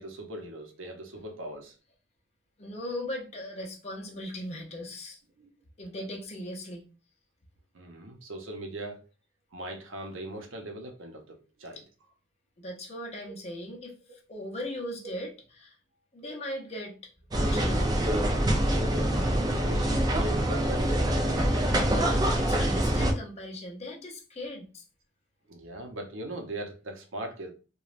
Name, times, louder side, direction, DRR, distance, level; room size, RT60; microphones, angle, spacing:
voice 1, 0.0-1.7 5.4-5.5 7.7-9.0 9.5-11.8 15.0-15.2 18.7-21.1 25.5-27.5, right 1 dB, 85° right, 0.6 m, -40 dB
voice 2, 2.6-5.2 5.8-6.8 12.6-15.3 15.6-15.8 16.1-18.0 21.7-24.8, left 1 dB, 35° left, 0.6 m, -39 dB
sound 1, 17.3-23.1, right 1 dB, 20° right, 0.4 m, -25 dB
3.1 x 2.2 x 2.4 m
head